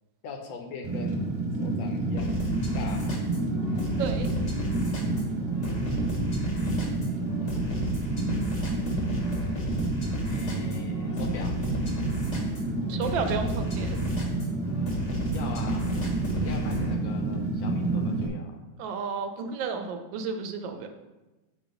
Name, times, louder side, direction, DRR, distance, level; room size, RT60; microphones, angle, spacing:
voice 1, 0.2-1.3 1.6-2.4 2.7-3.1 6.4-7.6 10.2-11.6 15.3-16.1 16.3-18.6, left 5 dB, 75° left, 3 dB, 1.5 m, -42 dB
Fire, 0.8-18.3, right 2 dB, 45° right, 0.8 m, -29 dB
sound 1, 2.2-16.9, equal, 40° left, 1.4 m, -35 dB
voice 2, 4.0-4.3 12.9-14.0 18.8-20.9, right 5 dB, 80° right, 6 dB, 1.4 m, -32 dB
6.5 x 3.9 x 5.2 m, 1.1 s
omnidirectional pair, 2.1 m